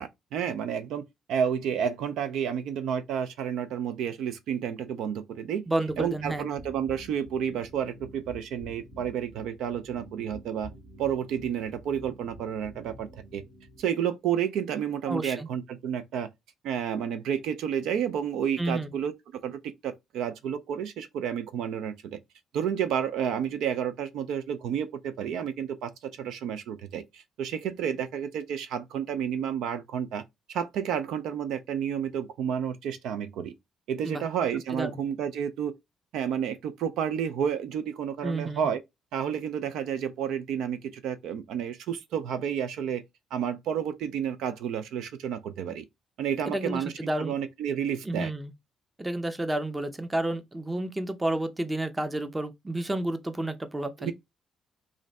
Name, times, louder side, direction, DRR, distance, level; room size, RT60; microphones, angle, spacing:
voice 1, 0.0-5.6 6.0-10.7 11.0-13.4 13.8-16.3 16.6-19.1 19.4-22.2 22.5-30.2 30.5-33.5 33.9-35.7 36.1-38.8 39.1-43.0 43.3-45.8 46.2-48.3 54.0-54.1, right 8 dB, 85° right, 0.4 m, -31 dB
voice 2, 5.7-6.5 15.1-15.5 18.6-18.9 34.0-34.2 34.7-35.0 38.2-38.7 46.5-47.3 48.0-48.5 49.0-54.1, right 1 dB, 15° right, 0.6 m, -30 dB
sound 1, 5.9-13.8, equal, 70° right, 2.0 m, -49 dB
3.1 x 2.5 x 4.0 m
cardioid pair, 90°, 0 cm